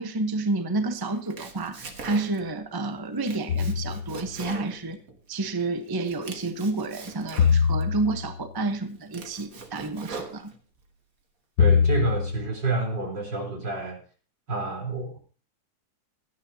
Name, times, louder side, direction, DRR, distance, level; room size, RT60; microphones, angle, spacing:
voice 1, 0.0-5.0 5.3-10.5, right 3 dB, 20° right, 0.7 m, -30 dB
Domestic sounds home sounds, 1.1-2.6 3.0-5.5 5.9-7.9 8.4-8.5 8.9-10.9, right 4 dB, 50° right, 1.8 m, -42 dB
sound 1, 3.5-4.3 7.4-8.4 11.6-12.5, left 6 dB, 70° left, 1.5 m, -23 dB
voice 2, 11.6-14.0 14.5-15.2, right 3 dB, 80° right, 4.6 m, -28 dB
17.0 x 12.5 x 2.8 m
omnidirectional pair, 1.9 m